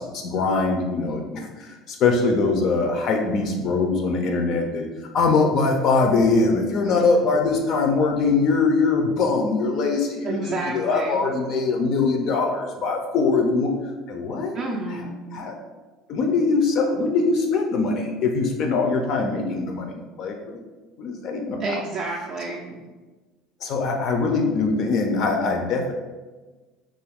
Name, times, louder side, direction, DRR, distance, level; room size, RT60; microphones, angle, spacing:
voice 1, 0.0-4.9 5.1-13.7 14.1-14.5 14.9-15.5 16.1-20.6 21.0-21.8 23.6-25.9, left 4 dB, 45° left, 2 dB, 0.3 m, -22 dB
voice 2, 10.2-11.3 14.5-15.1 21.6-22.8, right 3 dB, 40° right, -2 dB, 0.3 m, -30 dB
2.5 x 2.3 x 3.4 m, 1.3 s
cardioid pair, 145°, 0 cm